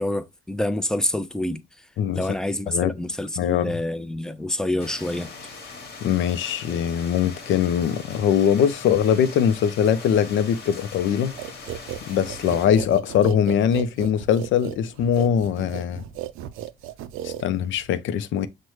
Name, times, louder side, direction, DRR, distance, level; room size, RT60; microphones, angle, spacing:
voice 1, 0.0-1.6 2.1-5.3, left 1 dB, 5° left, 0.4 m, -27 dB
voice 2, 3.4-3.7 6.0-11.4 12.1-16.0 17.2-18.5, left 8 dB, 75° left, 0.5 m, -22 dB
sound 1, 4.8-12.7, left 4 dB, 55° left, 1.2 m, -41 dB
sound 2, 11.4-17.9, right 11 dB, 90° right, 0.4 m, -35 dB
6.2 x 2.2 x 3.0 m
cardioid pair, 90°, 20 cm